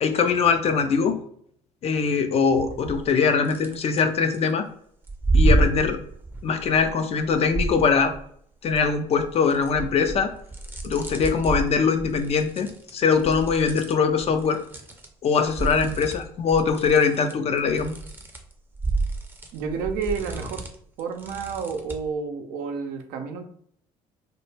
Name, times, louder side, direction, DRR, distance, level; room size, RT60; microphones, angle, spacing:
voice 1, 0.0-1.2 1.8-4.6 5.3-6.0 6.4-8.1 8.6-10.3 10.8-14.6 15.2-17.9, left 5 dB, 40° left, 7 dB, 0.4 m, -22 dB
sound 1, 2.5-3.1 3.4-4.4 5.0-8.3 8.7-15.1 15.3-22.1, right 3 dB, 10° right, 0.6 m, -29 dB
voice 2, 19.5-20.6 21.0-23.4, right 5 dB, 60° right, 5 dB, 0.5 m, -30 dB
2.1 x 2.0 x 3.2 m, 0.64 s
figure-of-eight pair, 55°, 17 cm